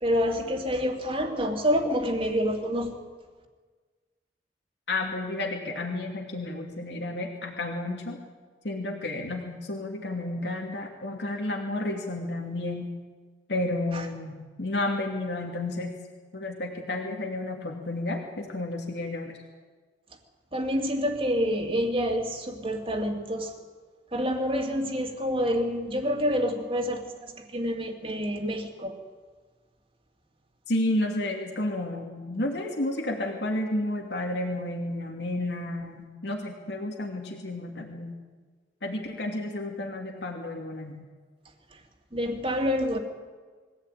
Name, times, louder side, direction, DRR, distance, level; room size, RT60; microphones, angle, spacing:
voice 1, 0.0-3.0 13.9-14.1 20.5-23.5 24.1-29.0 42.1-43.0, equal, 30° right, 3 dB, 2.7 m, -27 dB
voice 2, 4.9-8.2 8.6-12.9 13.5-15.9 16.3-19.4 30.7-38.2 38.8-41.0, left 1 dB, 75° left, 0 dB, 2.8 m, -31 dB
23.0 x 16.0 x 9.3 m, 1.4 s
head